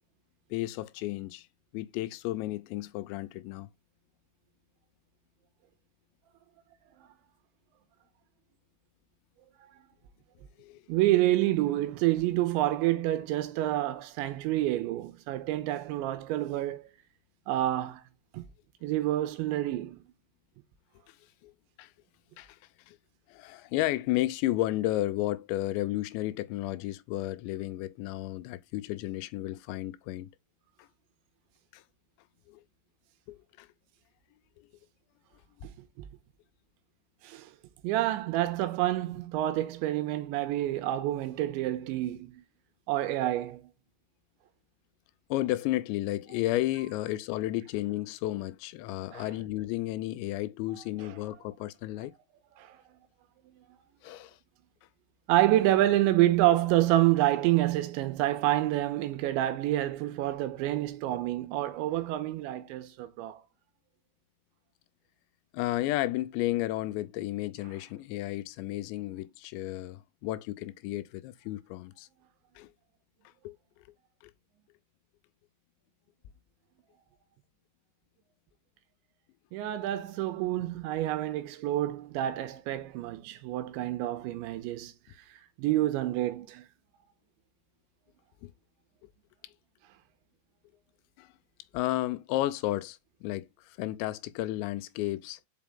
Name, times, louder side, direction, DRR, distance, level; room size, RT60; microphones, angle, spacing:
voice 1, 0.5-1.5 1.7-3.7 10.6-10.8 21.1-21.2 21.4-21.5 21.8-21.9 22.4-22.6 22.9-23.0 23.3-30.3 30.8-30.9 31.7-31.8 32.5-32.6 33.3-33.7 45.3-52.1 54.0-54.4 65.5-72.1 72.6-72.7 73.4-73.6 88.4-88.5 91.2-91.3 91.7-95.4, left 16 dB, 85° left, 2.7 m, -33 dB
voice 2, 10.9-16.8 17.5-18.0 18.3-18.4 18.8-20.0 35.6-35.7 37.2-37.5 37.8-42.4 42.9-43.7 49.1-49.3 51.0-51.1 52.6-52.8 55.3-63.4 79.5-84.9 85.6-86.6, right 15 dB, 80° right, 3.0 m, -28 dB
5.8 x 5.3 x 3.6 m
omnidirectional pair, 5.5 m